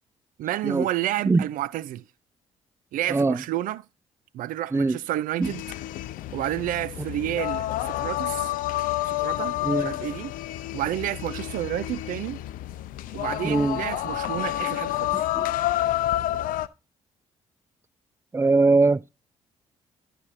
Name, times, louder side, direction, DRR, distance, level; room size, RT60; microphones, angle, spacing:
voice 1, 0.4-2.0 2.9-3.8 4.3-5.6 6.3-8.5 9.0-10.3 10.7-12.4 13.1-15.1, right 13 dB, 65° right, 0.5 m, -30 dB
sound 1, 5.4-16.7, left 14 dB, 65° left, 0.6 m, -29 dB
voice 2, 9.6-10.0 13.4-13.8 15.1-15.5 18.3-19.0, right 3 dB, 15° right, 0.4 m, -21 dB
11.5 x 5.0 x 4.3 m
hypercardioid pair, 45°, 15 cm